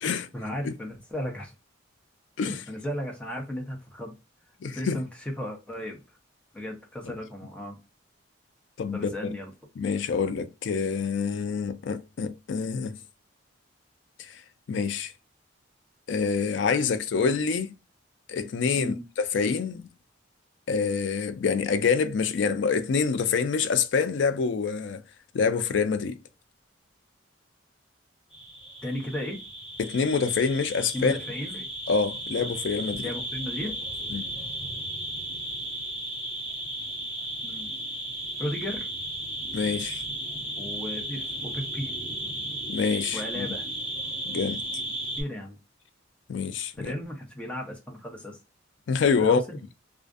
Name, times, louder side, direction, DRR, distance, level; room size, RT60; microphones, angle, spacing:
voice 1, 0.3-1.5 2.5-4.1 4.7-5.1 5.4-6.0 6.5-7.8 8.9-9.5 18.8-19.0 28.8-29.4 30.9-31.7 33.0-33.7 34.0-34.1 37.4-37.7 38.4-38.9 40.6-41.9 43.1-43.7 45.2-45.6 46.8-48.4 49.2-49.6, left 1 dB, 5° left, 0.7 m, -35 dB
voice 2, 4.6-5.0 8.8-9.1 9.8-12.9 14.2-14.4 14.7-15.1 16.1-17.7 18.3-18.9 19.3-19.9 20.7-25.0 25.3-26.2 29.8-31.2 31.9-33.1 34.1-34.3 39.5-40.0 42.7-43.5 44.3-44.6 46.3-46.9 48.9-49.4, left 5 dB, 65° left, 0.4 m, -26 dB
sound 1, 28.3-45.2, right 1 dB, 25° left, 1.1 m, -35 dB
2.5 x 2.4 x 2.3 m
head